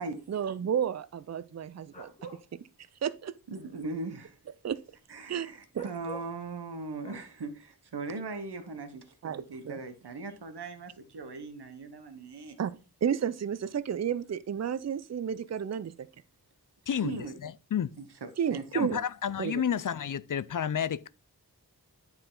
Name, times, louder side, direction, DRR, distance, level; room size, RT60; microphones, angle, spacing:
voice 1, 0.3-2.1 3.0-3.3 4.6-4.8 5.3-5.5 5.7-5.9 9.2-9.8 12.6-12.8 13.0-15.9 18.4-19.0 19.4-19.5, right 8 dB, 45° right, 0.5 m, -31 dB
sound 1, 1.9-2.4 5.7-6.3 7.0-7.2, right 2 dB, 15° left, 1.9 m, -45 dB
voice 2, 3.5-4.4 5.1-12.6 16.9-17.3 18.0-19.0, right 3 dB, 80° right, 1.1 m, -39 dB
voice 3, 17.4-18.0 18.7-21.1, left 8 dB, 55° left, 0.4 m, -31 dB
9.9 x 4.4 x 3.8 m
wide cardioid pair, 85°, 39 cm